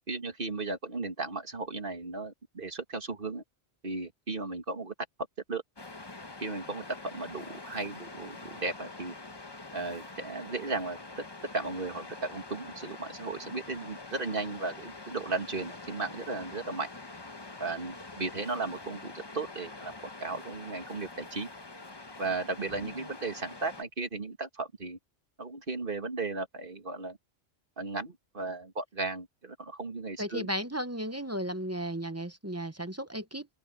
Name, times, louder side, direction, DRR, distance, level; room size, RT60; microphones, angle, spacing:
voice 1, 0.1-3.4 3.8-4.9 5.5-5.6 6.4-9.1 9.7-11.0 11.5-16.9 17.6-19.9 20.2-21.5 22.2-25.0 25.4-27.2 27.8-30.5, right 3 dB, 50° right, 2.1 m, -35 dB
Waves surf, 5.8-23.8, left 3 dB, 25° left, 1.0 m, -45 dB
voice 2, 30.2-33.5, right 1 dB, 15° right, 0.8 m, -35 dB
open air
omnidirectional pair, 1.2 m